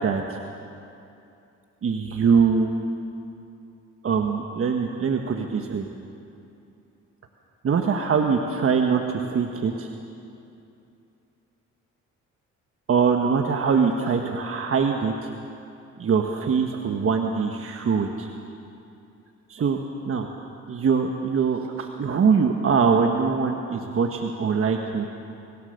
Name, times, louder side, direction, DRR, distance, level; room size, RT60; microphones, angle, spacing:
voice 1, 0.0-0.4 1.8-2.7 4.0-5.9 7.6-9.9 12.9-15.3 16.0-18.3 19.5-19.8 20.0-20.3 20.7-25.0, right 5 dB, 45° right, 3 dB, 1.3 m, -23 dB
25.0 x 17.0 x 6.6 m, 2.7 s
cardioid pair, 90°, 30 cm